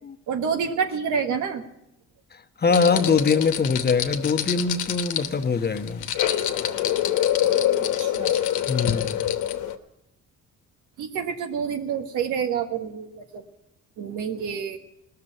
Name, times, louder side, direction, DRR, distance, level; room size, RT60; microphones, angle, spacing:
voice 1, 0.3-1.6 8.0-8.4 11.0-13.4 14.0-14.8, right 7 dB, 90° right, 5 dB, 1.4 m, -28 dB
voice 2, 2.3-6.1 8.7-9.3, left 5 dB, 30° left, 8 dB, 1.0 m, -23 dB
sound 1, 2.7-9.7, left 11 dB, 80° left, 1.0 m, -25 dB
18.5 x 6.8 x 9.0 m, 0.84 s
cardioid pair, 90°, 30 cm